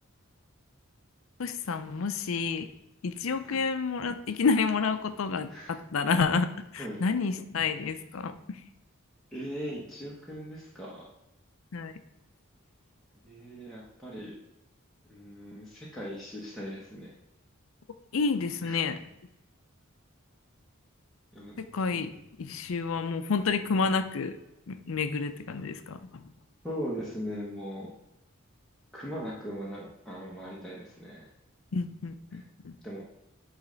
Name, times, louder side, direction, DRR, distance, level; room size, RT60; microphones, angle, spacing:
voice 1, 1.4-2.7 3.0-8.6 11.7-11.9 18.1-19.0 21.7-22.1 22.4-24.4 24.7-26.2 31.7-32.7, left 4 dB, 70° left, 10 dB, 0.5 m, -29 dB
voice 2, 5.5-5.8 6.8-7.0 9.3-11.1 13.2-14.3 15.1-17.1 18.6-18.8 21.3-21.6 26.6-27.9 28.9-31.3 32.3-32.4 32.8-33.0, equal, ahead, -7 dB, 1.1 m, -39 dB
8.8 x 3.2 x 3.9 m, 0.87 s
head